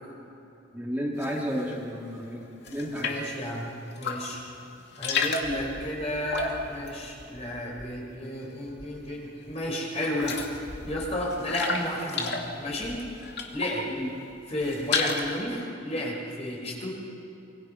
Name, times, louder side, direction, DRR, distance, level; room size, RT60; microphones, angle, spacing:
voice 1, 0.7-3.2 13.9-14.1, equal, 10° right, -4 dB, 2.9 m, -32 dB
sound 1, 1.2-1.8 2.2-3.4 3.9-4.4 4.7-8.2 8.4-9.1 9.5-9.6 9.9-13.9 14.3-15.4, left 4 dB, 60° left, 2.5 m, -33 dB
voice 2, 3.0-3.7 4.0-4.4 5.0-10.4 10.9-13.0 13.5-13.9 14.5-16.9, left 1 dB, 35° left, -2 dB, 5.6 m, -32 dB
27.0 x 24.0 x 5.9 m, 2.9 s
head